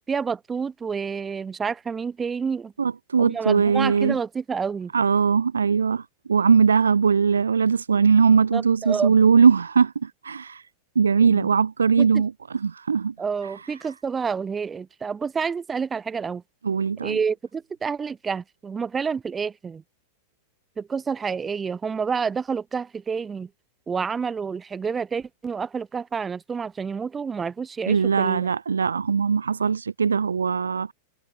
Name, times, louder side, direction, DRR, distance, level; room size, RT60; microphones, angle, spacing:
voice 1, 0.1-2.7 3.2-4.9 8.5-9.1 11.2-11.5 12.0-12.2 13.2-16.4 17.0-19.8 20.8-23.5 23.9-28.5, right 6 dB, 15° right, 1.2 m, -29 dB
voice 2, 2.8-4.2 4.9-6.0 6.3-10.6 11.0-13.1 16.6-17.2 27.9-30.9, right 6 dB, 75° right, 0.4 m, -20 dB
figure-of-eight pair, 90°, 0 cm